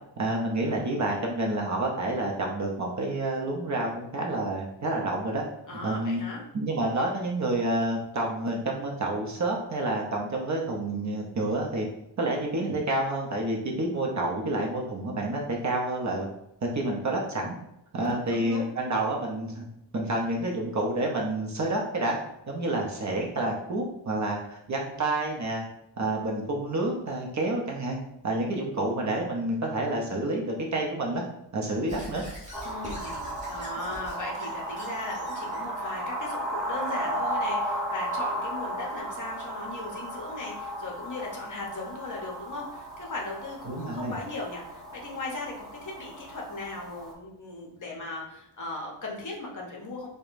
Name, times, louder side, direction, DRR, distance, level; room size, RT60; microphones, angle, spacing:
voice 1, 0.2-5.4 5.8-6.2 6.5-11.9 12.2-16.3 16.6-17.5 17.9-19.6 19.9-22.2 22.5-25.7 26.0-28.0 28.2-31.2 31.5-32.2 43.7-44.1, right 2 dB, 40° right, -1 dB, 0.6 m, -29 dB
voice 2, 5.7-6.4 18.0-18.7 32.6-50.1, left 2 dB, 45° left, -1 dB, 0.7 m, -38 dB
Squeak / Writing, 31.9-35.6, equal, 15° right, 1.2 m, -43 dB
sound 1, 32.5-47.1, right 1 dB, ahead, 0.6 m, -35 dB
4.7 x 2.2 x 2.5 m, 0.79 s
wide cardioid pair, 150°, 44 cm